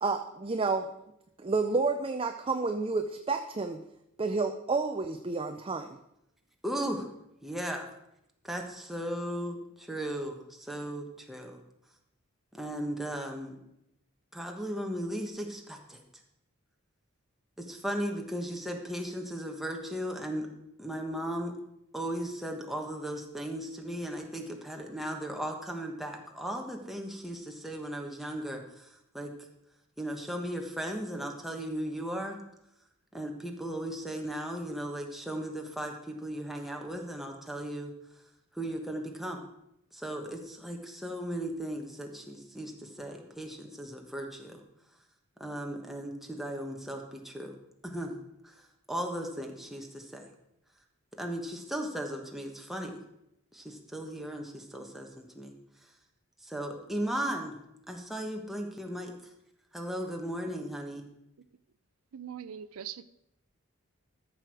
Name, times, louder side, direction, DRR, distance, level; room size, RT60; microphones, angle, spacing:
voice 1, 0.0-0.9 1.4-3.8 4.2-6.0, right 3 dB, 25° right, 6 dB, 0.5 m, -30 dB
voice 2, 6.6-7.1 7.4-7.9 8.4-11.6 12.5-13.6 14.3-16.0 17.6-20.5 20.8-21.5 21.9-29.3 30.0-32.4 33.1-37.9 38.5-39.5 39.9-44.5 45.4-47.5 47.8-48.5 48.9-50.3 51.2-53.0 53.5-55.5 56.4-57.6 57.9-59.1 59.7-61.0, right 1 dB, ahead, 2 dB, 1.2 m, -36 dB
voice 3, 62.1-63.0, right 9 dB, 80° right, 14 dB, 0.5 m, -41 dB
13.5 x 6.2 x 4.8 m, 0.83 s
head